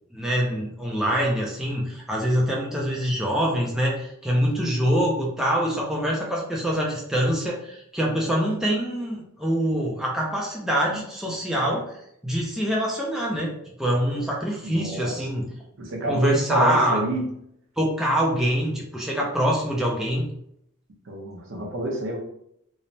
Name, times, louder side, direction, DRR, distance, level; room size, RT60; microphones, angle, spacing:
voice 1, 0.1-11.9 12.2-15.5 16.1-17.0 17.8-20.3, equal, ahead, -3 dB, 0.3 m, -24 dB
voice 2, 14.6-15.2 15.8-17.3 21.1-22.2, right 1 dB, 65° right, 0 dB, 0.6 m, -28 dB
3.1 x 2.0 x 2.6 m, 0.73 s
head